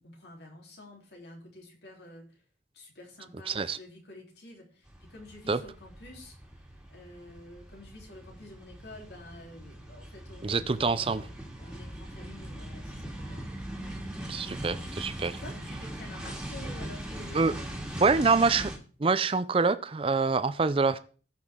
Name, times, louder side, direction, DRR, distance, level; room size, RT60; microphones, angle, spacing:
voice 1, 0.0-2.4 2.7-6.3 6.9-11.3 11.6-13.5 13.8-14.1 14.4-14.8 15.3-18.5, left 1 dB, 70° left, 3.6 m, -49 dB
voice 2, 3.5-3.8 5.5-5.6 10.4-11.2 14.3-15.3 17.3-17.5 18.0-18.7 19.0-21.0, right 4 dB, 30° right, 0.5 m, -25 dB
sound 1, 4.9-18.8, right 1 dB, 5° right, 2.1 m, -41 dB
18.0 x 6.0 x 3.7 m
head